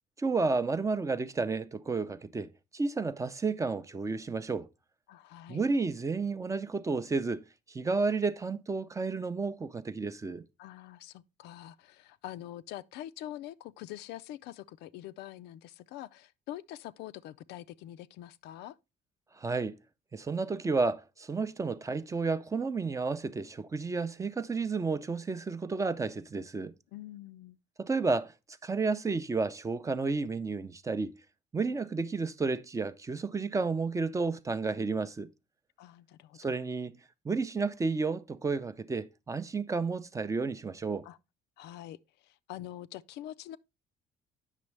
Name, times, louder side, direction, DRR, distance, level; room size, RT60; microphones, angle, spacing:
voice 1, 0.2-4.7 5.5-10.4 19.4-19.8 20.1-26.7 27.8-28.3 28.6-31.2 31.5-35.3 36.4-37.0 37.2-41.1, right 4 dB, 20° right, 0.4 m, -31 dB
voice 2, 5.1-5.6 10.6-18.8 26.9-27.6 35.8-36.5 41.0-41.2 41.6-43.6, left 13 dB, 80° left, 0.4 m, -45 dB
8.3 x 6.1 x 3.2 m
cardioid pair, 110°, 17 cm